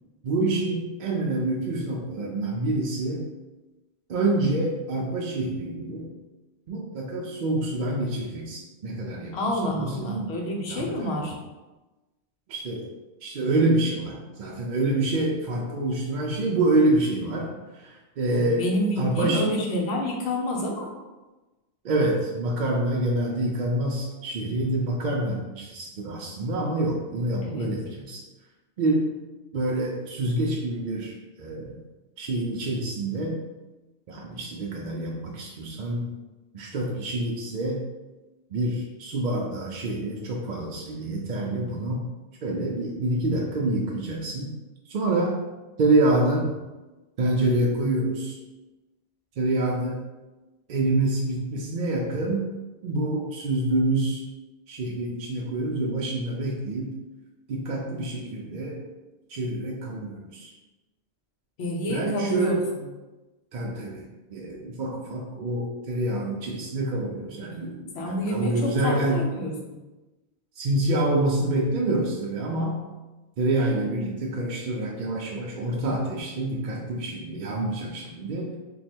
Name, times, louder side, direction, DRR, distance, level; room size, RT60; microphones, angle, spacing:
voice 1, 0.2-3.3 4.1-6.1 6.7-9.4 9.6-10.3 10.7-11.2 12.5-12.9 13.2-18.6 19.0-19.5 21.8-28.2 28.8-29.1 29.5-31.8 32.2-33.4 34.1-36.1 36.5-37.8 38.5-42.1 42.4-44.5 44.9-45.4 45.8-46.5 47.2-48.4 49.4-50.0 50.7-52.5 52.8-54.2 54.7-56.9 57.5-58.8 59.3-60.5 61.9-62.6 63.5-64.0 64.3-69.2 70.6-72.8 73.4-78.5, right 2 dB, 60° right, -1 dB, 0.5 m, -27 dB
voice 2, 9.3-11.4 18.6-20.9 27.4-27.7 61.6-62.5 67.9-69.5, left 1 dB, 75° left, 0 dB, 1.0 m, -28 dB
3.0 x 2.3 x 4.2 m, 1.1 s
omnidirectional pair, 1.1 m